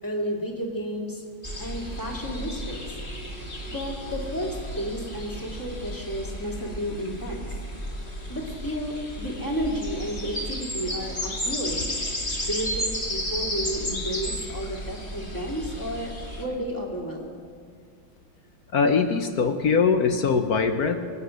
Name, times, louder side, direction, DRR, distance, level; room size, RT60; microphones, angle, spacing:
voice 1, 0.0-1.2 1.6-2.9 3.7-7.5 8.3-11.9 12.4-17.3, equal, 10° left, 0 dB, 2.1 m, -32 dB
sound 1, 1.4-16.4, equal, 25° left, 2.5 m, -33 dB
voice 2, 18.7-21.0, left 5 dB, 60° left, 7 dB, 1.1 m, -22 dB
25.5 x 8.8 x 6.4 m, 2.1 s
omnidirectional pair, 2.2 m